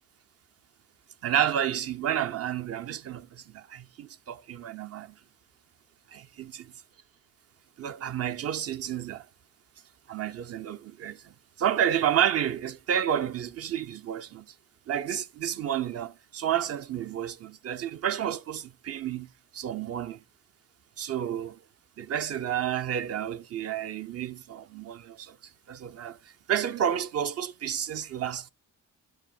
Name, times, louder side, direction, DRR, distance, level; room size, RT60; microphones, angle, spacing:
voice 1, 1.2-5.1 6.1-6.6 7.8-9.3 10.1-14.5 14.9-20.2 21.0-21.6 22.0-28.5, right 10 dB, 50° right, 0.6 m, -30 dB
10.5 x 6.8 x 2.2 m
cardioid pair, 90°, 30 cm